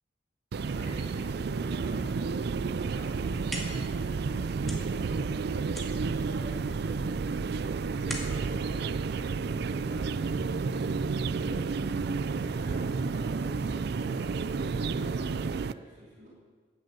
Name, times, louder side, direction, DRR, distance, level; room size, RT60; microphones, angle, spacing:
sound 1, 0.5-15.7, right 4 dB, 65° right, 0.4 m, -31 dB
voice 1, 0.6-5.7 6.0-10.6 11.0-16.3, equal, 50° right, -7 dB, 5.6 m, -48 dB
sound 2, 3.1-9.9, equal, ahead, 2.2 m, -44 dB
sound 3, 7.3-15.0, left 1 dB, 65° left, 2.1 m, -55 dB
15.0 x 7.9 x 9.1 m, 1.5 s
head